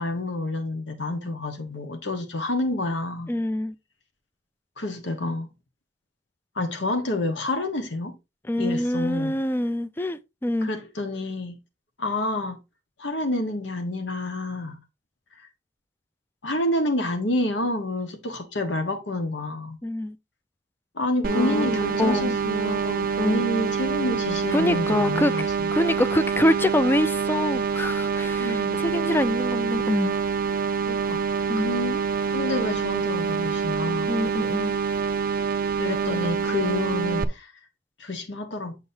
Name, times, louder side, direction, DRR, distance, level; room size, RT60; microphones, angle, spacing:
voice 1, 0.0-3.3 4.8-5.5 6.5-8.1 8.6-9.4 10.6-11.6 12.0-12.6 13.0-14.8 15.4-15.5 16.4-19.8 20.9-25.7 28.4-28.8 30.9-31.2 31.6-34.1 35.8-37.5 38.0-38.8, left 1 dB, 80° left, 1.4 m, -29 dB
voice 2, 3.3-3.7 8.5-10.7 19.8-20.2 21.2-22.4 23.2-23.4 24.5-25.3 25.7-30.1 31.5-31.7 34.1-34.7, left 1 dB, 10° left, 0.4 m, -25 dB
sound 1, 21.2-37.3, right 6 dB, 50° right, 0.5 m, -26 dB
7.2 x 6.4 x 2.7 m
head